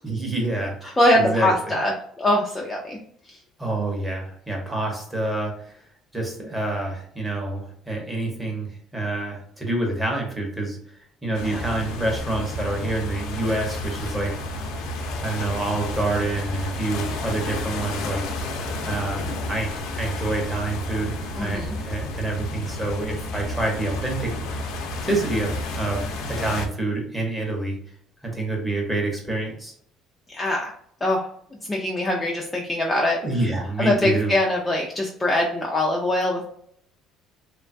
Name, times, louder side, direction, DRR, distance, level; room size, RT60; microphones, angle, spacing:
voice 1, 0.0-1.8 3.6-5.8 6.1-10.8 11.2-14.4 15.2-18.2 18.9-24.5 25.0-27.8 28.2-29.7 33.2-34.3, right 2 dB, 10° right, 0 dB, 0.8 m, -27 dB
voice 2, 1.0-1.9 2.2-3.0 11.4-11.6 21.4-21.8 30.3-30.7 31.0-31.2 31.7-33.2 33.8-36.5, left 1 dB, 10° left, -2 dB, 0.4 m, -22 dB
sound 1, 11.3-26.7, left 2 dB, 75° left, 0.5 m, -31 dB
3.0 x 2.2 x 2.5 m, 0.65 s
cardioid pair, 155°, 0 cm